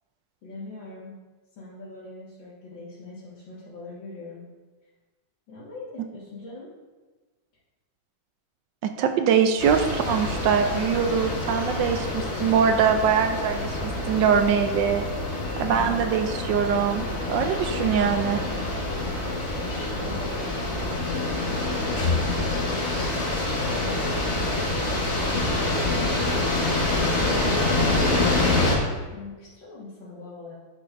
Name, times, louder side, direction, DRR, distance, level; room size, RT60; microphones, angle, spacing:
voice 1, 0.4-1.2 1.6-4.5 5.5-6.7 15.6-16.0 19.0-24.3 24.7-26.3 29.1-30.5, left 3 dB, 75° left, -9 dB, 2.3 m, -42 dB
voice 2, 8.8-15.1 15.6-18.4, right 7 dB, 75° right, 6 dB, 1.1 m, -23 dB
sound 1, 9.6-28.8, left 2 dB, 40° left, 1.4 m, -26 dB
10.5 x 6.5 x 2.5 m, 1.3 s
omnidirectional pair, 2.1 m